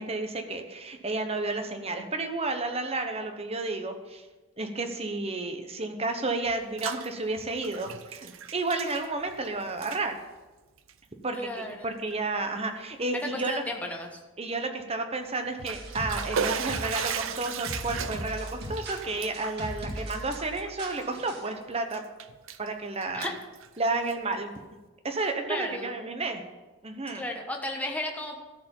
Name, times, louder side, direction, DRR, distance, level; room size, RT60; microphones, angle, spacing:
voice 1, 0.0-4.2 4.6-10.2 11.2-13.6 14.4-22.0 22.6-23.3 23.8-24.5 25.0-26.4 26.8-27.2, right 2 dB, 30° right, 5 dB, 1.1 m, -31 dB
Bathtub (filling or washing), 6.5-7.1 7.4-9.5 9.7-10.0 10.8-10.9 11.6-11.7 12.1-12.2 15.4-21.5 21.9-22.7 23.0-24.3, right 7 dB, 75° right, 0.6 m, -36 dB
voice 2, 11.4-11.9 13.1-14.2 23.1-23.4 25.2-25.9 27.1-28.4, left 1 dB, 5° left, 1 dB, 1.2 m, -34 dB
sound 1, 15.7-21.5, right 1 dB, 55° right, 2.0 m, -39 dB
13.5 x 4.8 x 7.2 m, 1.2 s
head